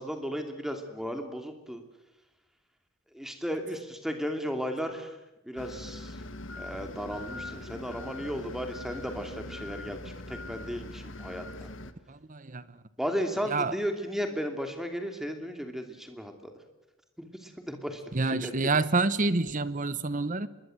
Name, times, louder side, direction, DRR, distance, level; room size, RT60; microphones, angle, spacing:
voice 1, 0.0-1.8 3.1-5.2 5.4-6.2 6.6-11.7 13.0-16.5 17.2-18.5, equal, ahead, 5 dB, 2.7 m, -35 dB
sound 1, 5.6-11.9, left 2 dB, 65° left, 1.5 m, -42 dB
voice 2, 12.1-12.8 13.5-13.7 18.1-20.5, right 3 dB, 40° right, 15 dB, 1.0 m, -28 dB
25.5 x 21.5 x 7.9 m, 0.99 s
head